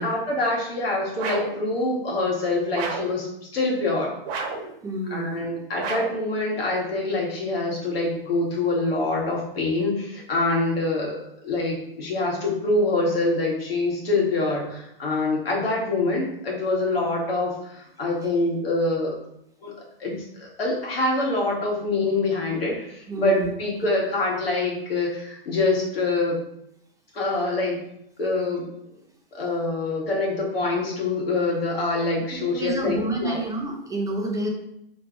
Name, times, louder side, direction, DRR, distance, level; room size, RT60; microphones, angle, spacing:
voice 1, 0.0-3.3 3.5-4.1 5.1-11.2 11.4-19.2 19.6-19.7 20.0-26.4 27.1-27.8 28.2-28.7 29.3-33.4, left 2 dB, 80° left, -2 dB, 1.5 m, -25 dB
sound 1, 1.2-1.6 2.7-3.2 4.3-4.7 5.8-6.3, right 4 dB, 45° right, 0.8 m, -31 dB
voice 2, 4.8-5.4 23.1-23.5 32.3-34.5, right 2 dB, 10° right, -1 dB, 0.6 m, -29 dB
3.2 x 2.5 x 4.4 m, 0.77 s
hypercardioid pair, 115°, 29 cm